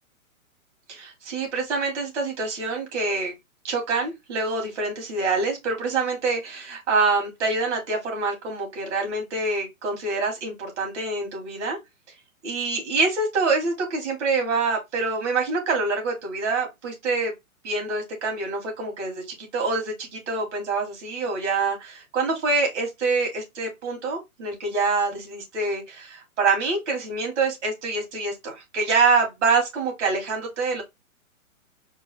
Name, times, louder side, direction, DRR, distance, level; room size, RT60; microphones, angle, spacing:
voice 1, 0.9-3.3 3.6-11.8 12.4-17.3 17.6-30.8, right 3 dB, 55° right, 2.4 m, -26 dB
4.5 x 2.1 x 4.5 m
hypercardioid pair, 155°, 42 cm